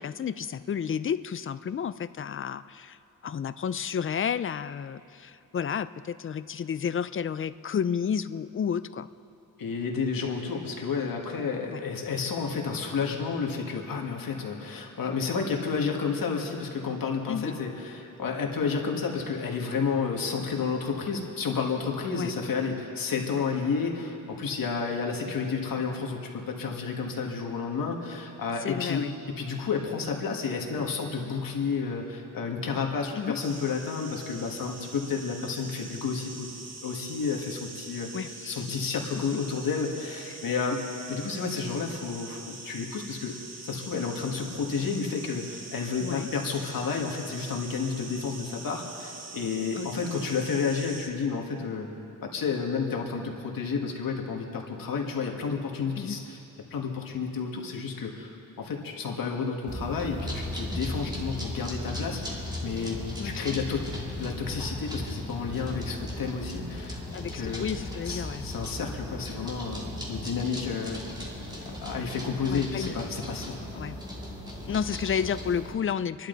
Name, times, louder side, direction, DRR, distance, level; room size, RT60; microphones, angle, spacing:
voice 1, 0.0-3.0 3.2-9.1 11.7-11.8 17.3-17.5 22.2-22.3 28.6-29.1 33.2-33.4 38.1-38.8 39.3-39.4 40.3-40.4 46.0-46.3 49.8-49.9 56.0-56.2 63.2-63.6 67.1-68.5 72.5-73.0 73.7-74.0 74.7-76.3, left 7 dB, 40° left, 14 dB, 0.5 m, -31 dB
voice 2, 9.6-29.1 29.4-36.5 36.8-40.8 41.1-43.4 43.6-51.9 52.2-56.4 56.7-58.3 58.6-63.8 64.2-67.0 67.3-67.7 68.0-71.0 71.7-73.6 74.7-74.8, left 5 dB, 75° left, 1 dB, 2.0 m, -31 dB
sound 1, 33.3-51.1, right 3 dB, 50° right, 1.7 m, -44 dB
sound 2, 59.7-75.7, left 1 dB, 10° right, 2.6 m, -36 dB
28.0 x 11.5 x 4.0 m, 2.7 s
wide cardioid pair, 115°, 34 cm